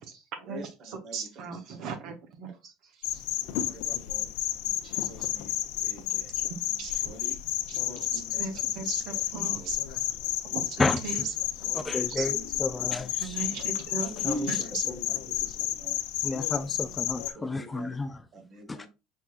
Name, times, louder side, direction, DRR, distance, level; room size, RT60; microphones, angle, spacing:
voice 1, 0.0-2.5 3.0-3.2 6.3-7.4 7.7-7.8 8.1-10.2 10.5-11.2 11.6-11.7 12.2-12.3 13.2-14.8 16.5-17.0 18.4-18.5, right 5 dB, 60° right, 0.9 m, -38 dB
voice 2, 1.0-1.5 3.4-4.3 4.6-5.6 5.8-6.3 7.0-7.4 7.9-8.4 8.7-8.8 9.1-9.2 9.6-9.7 11.6-12.4 12.9-13.0 14.0-14.6 14.9-15.0 15.3-16.0 17.3-17.9 18.3-18.9, right 1 dB, 45° right, 1.2 m, -42 dB
sound 1, 3.0-17.3, left 13 dB, 75° left, 0.5 m, -31 dB
voice 3, 11.7-13.4 14.2-14.5 14.9-15.0 16.2-18.3 18.7-18.9, left 3 dB, 15° left, 0.3 m, -31 dB
4.5 x 3.5 x 2.4 m
supercardioid pair, 115°, 0 cm